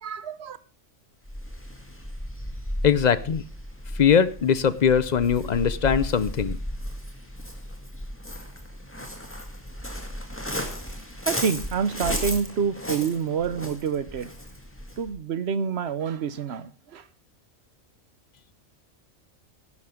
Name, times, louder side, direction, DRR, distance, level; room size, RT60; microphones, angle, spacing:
voice 1, 0.0-0.6 11.3-14.3 15.0-17.0, right 6 dB, 60° right, 1.1 m, -27 dB
Waves surf, 1.2-15.1, equal, 10° left, 1.9 m, -35 dB
voice 2, 2.8-3.4 3.9-6.6, left 7 dB, 45° left, 0.7 m, -21 dB
11.5 x 11.0 x 3.7 m
omnidirectional pair, 1.3 m